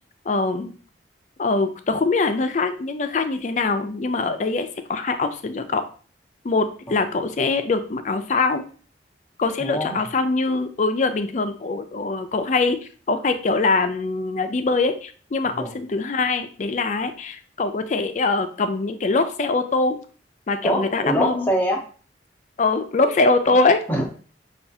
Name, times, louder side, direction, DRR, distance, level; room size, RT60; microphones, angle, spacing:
voice 1, 0.3-0.7 1.4-5.8 6.4-8.6 9.4-20.0 20.5-21.5 22.6-23.8, left 3 dB, 40° left, 8 dB, 0.4 m, -23 dB
voice 2, 9.6-10.0 15.6-15.7 20.6-21.8 23.9-24.1, equal, 10° left, 0 dB, 0.7 m, -24 dB
5.6 x 2.4 x 2.7 m, 0.40 s
head